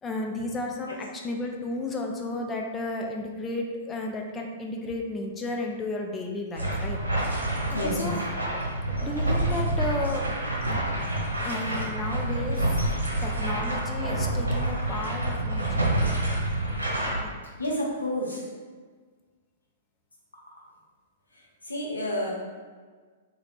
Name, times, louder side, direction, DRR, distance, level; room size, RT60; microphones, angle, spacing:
voice 1, 0.0-7.0 7.8-8.2 9.0-10.3 11.4-12.8 13.2-15.9 17.1-17.3, left 2 dB, 15° left, 1 dB, 0.3 m, -33 dB
sound 1, 6.5-17.2, right 1 dB, 85° right, 1.2 m, -28 dB
voice 2, 7.7-8.1 17.6-18.5 21.6-22.3, left 1 dB, 80° left, -3 dB, 0.8 m, -29 dB
2.8 x 2.7 x 3.4 m, 1.5 s
figure-of-eight pair, 105°, 0 cm